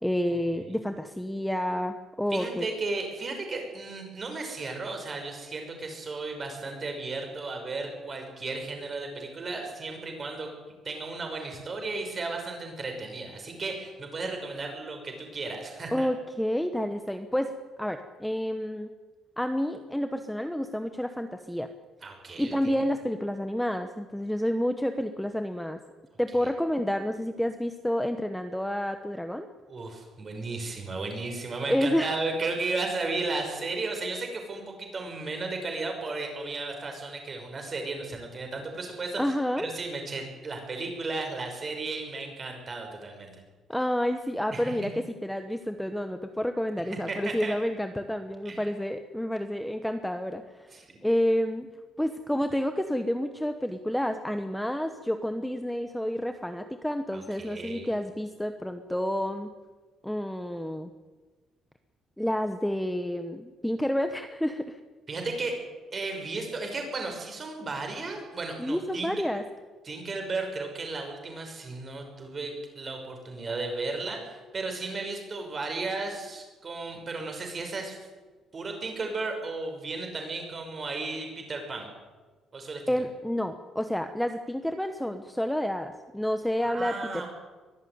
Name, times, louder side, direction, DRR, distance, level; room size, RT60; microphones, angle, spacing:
voice 1, 0.0-2.7 15.9-17.5 17.8-18.9 19.4-21.7 22.4-25.8 26.2-29.5 31.7-32.2 39.2-39.7 43.7-51.7 52.0-59.5 60.0-60.9 62.2-64.8 68.6-69.4 82.9-87.3, equal, 5° left, 7 dB, 1.0 m, -29 dB
voice 2, 2.3-10.5 10.8-16.1 22.0-22.8 26.4-26.5 29.7-43.3 44.5-44.9 47.1-47.6 48.4-48.7 50.7-51.0 57.1-57.9 65.1-65.6 65.9-69.2 69.8-78.0 78.5-81.9 82.5-82.9 86.6-87.3, right 3 dB, 30° right, 3 dB, 5.9 m, -34 dB
23.0 x 14.0 x 9.5 m, 1.3 s
cardioid pair, 150°, 0 cm